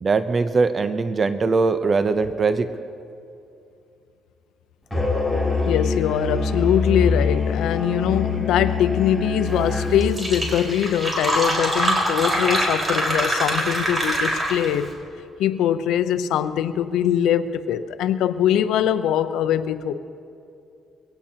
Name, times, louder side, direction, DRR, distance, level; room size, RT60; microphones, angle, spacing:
voice 1, 0.0-2.7, right 4 dB, 40° right, 10 dB, 0.7 m, -21 dB
Musical instrument, 4.9-10.0, left 4 dB, ahead, 3.2 m, -24 dB
voice 2, 5.7-14.9 15.4-19.9, left 10 dB, 85° left, 10 dB, 0.6 m, -22 dB
Fill (with liquid), 9.7-9.8 10.0-14.8, right 1 dB, 20° right, 4.5 m, -23 dB
22.5 x 17.5 x 2.9 m, 2.5 s
cardioid pair, 90°, 0 cm